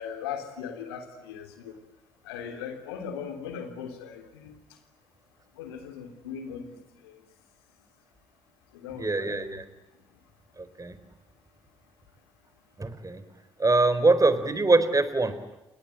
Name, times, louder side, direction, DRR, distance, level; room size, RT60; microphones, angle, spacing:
voice 1, 0.0-1.8 2.2-4.5 5.6-6.8 7.0-7.2 8.7-9.6, left 7 dB, 85° left, 6 dB, 3.3 m, -39 dB
voice 2, 9.0-9.6 10.6-11.0 12.8-13.2 13.6-15.4, right 3 dB, 25° right, 13 dB, 4.2 m, -23 dB
29.5 x 21.0 x 9.1 m, 1.0 s
hypercardioid pair, 40°, 13 cm